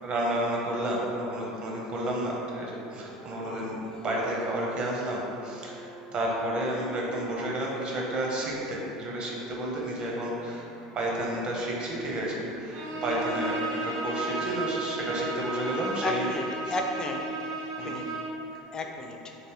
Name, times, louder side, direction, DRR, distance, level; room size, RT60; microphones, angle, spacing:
voice 1, 0.0-10.7 10.9-16.3 17.8-18.0, right 1 dB, 40° right, -3 dB, 0.8 m, -31 dB
sound 1, 0.6-18.9, right 2 dB, 65° right, 1.2 m, -47 dB
voice 2, 3.4-3.8 10.8-11.0 16.0-17.2 17.8-18.1 18.7-19.4, left 2 dB, 25° left, 3 dB, 0.4 m, -34 dB
Bowed string instrument, 12.7-18.4, right 2 dB, 85° right, 0.6 m, -34 dB
3.1 x 3.0 x 3.0 m, 2.7 s
supercardioid pair, 105°, 3 cm